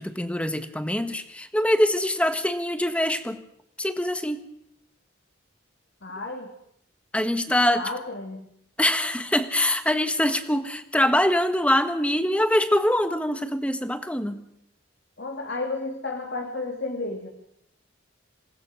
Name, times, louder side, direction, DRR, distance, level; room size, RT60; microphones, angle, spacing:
voice 1, 0.0-3.4 3.8-4.4 7.1-7.9 8.8-14.4, left 1 dB, 5° left, 9 dB, 1.3 m, -24 dB
voice 2, 6.0-6.5 7.7-8.5 15.2-17.3, left 3 dB, 65° left, 3 dB, 2.2 m, -32 dB
27.5 x 18.5 x 6.3 m, 0.76 s
head